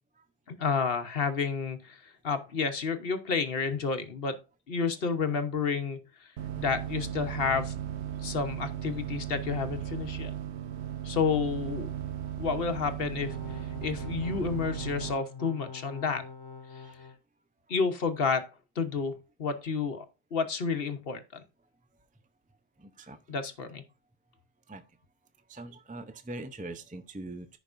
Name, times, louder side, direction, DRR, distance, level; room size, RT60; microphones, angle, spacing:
voice 1, 0.5-4.4 4.7-6.0 6.6-7.7 8.2-10.3 11.0-11.9 12.4-13.4 13.8-16.2 16.7-16.8 17.7-18.5 18.8-20.0 20.3-21.4 23.3-23.8, left 5 dB, 60° left, 1.3 m, -30 dB
sound 1, 6.4-15.1, right 10 dB, 85° right, 1.1 m, -36 dB
sound 2, 13.3-17.2, left 5 dB, 25° left, 1.0 m, -45 dB
voice 2, 22.8-23.4 24.7-24.8 25.5-27.6, right 2 dB, 10° right, 0.5 m, -42 dB
14.0 x 5.3 x 2.6 m
omnidirectional pair, 1.1 m